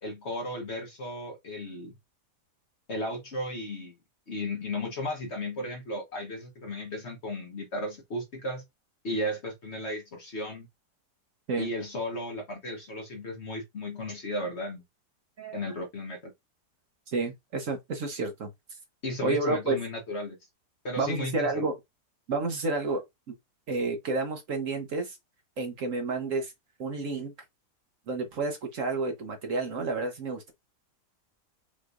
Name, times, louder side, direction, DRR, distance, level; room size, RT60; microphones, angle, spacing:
voice 1, 0.0-2.0 2.9-3.9 4.3-8.6 9.0-10.7 11.6-14.8 15.5-16.3 19.0-20.4 20.8-21.7, left 1 dB, 45° left, 1.1 m, -35 dB
voice 2, 17.1-18.5 19.2-19.8 21.0-21.7 22.3-23.3 23.7-25.2 25.6-26.5 26.8-27.3 28.1-30.5, right 3 dB, 55° right, 1.1 m, -30 dB
5.2 x 3.2 x 2.4 m
omnidirectional pair, 1.8 m